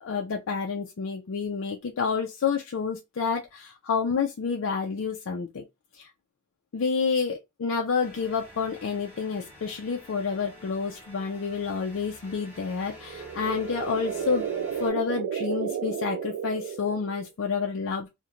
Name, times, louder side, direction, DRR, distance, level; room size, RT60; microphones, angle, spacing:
voice 1, 0.0-5.6 5.9-6.1 6.7-14.5 14.8-18.1, left 5 dB, 60° left, 0.4 m, -29 dB
sound 1, 8.0-14.9, left 1 dB, 10° right, 0.8 m, -49 dB
sound 2, 12.9-17.3, right 7 dB, 75° right, 0.3 m, -32 dB
2.5 x 2.1 x 2.9 m
head